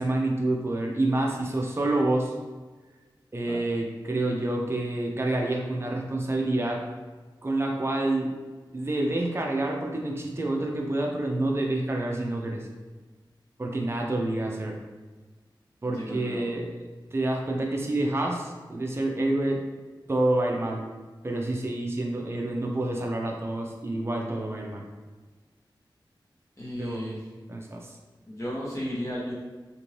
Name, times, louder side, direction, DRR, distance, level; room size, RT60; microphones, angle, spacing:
voice 1, 0.0-2.3 3.3-6.8 7.4-8.3 8.7-12.6 13.6-14.7 15.8-16.7 17.1-19.6 20.1-20.8 21.2-24.8 26.8-27.0 27.5-27.9, right 2 dB, 30° right, 0 dB, 0.5 m, -28 dB
voice 2, 15.8-16.5 26.6-27.3 28.3-29.3, equal, 35° left, -7 dB, 1.1 m, -34 dB
2.6 x 2.6 x 3.1 m, 1.3 s
wide cardioid pair, 75°, 8 cm